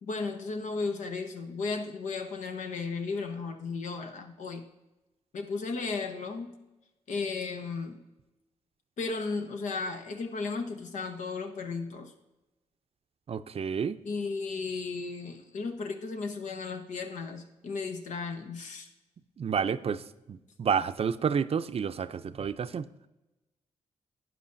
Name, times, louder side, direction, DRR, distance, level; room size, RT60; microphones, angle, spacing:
voice 1, 0.0-4.6 5.3-6.5 7.1-8.0 9.0-12.1 14.0-18.9, left 4 dB, 75° left, 6 dB, 1.1 m, -35 dB
voice 2, 13.3-14.0 19.4-20.0 20.3-22.8, right 7 dB, 50° right, 12 dB, 0.5 m, -30 dB
12.0 x 9.2 x 2.6 m, 1.0 s
cardioid pair, 60°, 13 cm